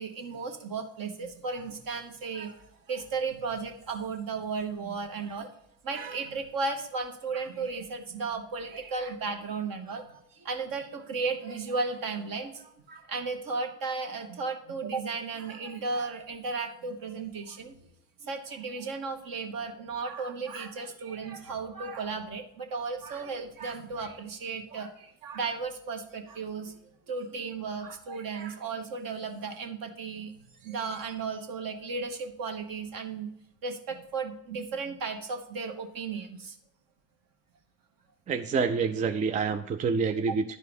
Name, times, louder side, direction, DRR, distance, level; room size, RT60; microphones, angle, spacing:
voice 1, 0.0-5.5 5.8-17.7 18.2-26.7 27.1-30.3 30.6-33.3 33.6-36.6, right 4 dB, 45° right, 5 dB, 1.4 m, -35 dB
voice 2, 38.3-40.6, right 5 dB, 20° right, 8 dB, 0.3 m, -27 dB
11.0 x 4.6 x 5.2 m, 0.76 s
hypercardioid pair, 60°, 49 cm